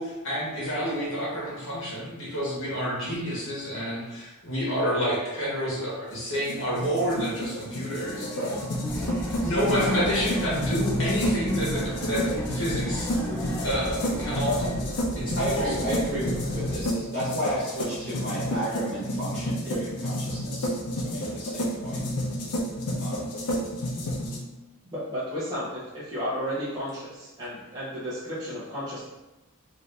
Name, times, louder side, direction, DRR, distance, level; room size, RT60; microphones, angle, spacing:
voice 1, 0.0-8.3 8.9-13.1 13.6-14.7 15.2-15.7, equal, 60° left, -7 dB, 1.2 m, -29 dB
sound 1, 6.1-24.4, equal, 90° left, 0.6 m, -31 dB
sound 2, 8.0-14.8, equal, 10° left, 0.4 m, -41 dB
sound 3, 8.8-16.9, equal, 35° left, 0.9 m, -34 dB
voice 2, 15.3-22.0 23.0-23.3, equal, 45° right, -8 dB, 1.1 m, -32 dB
voice 3, 24.9-29.0, equal, 20° right, -13 dB, 0.7 m, -33 dB
2.6 x 2.6 x 3.2 m, 1.1 s
head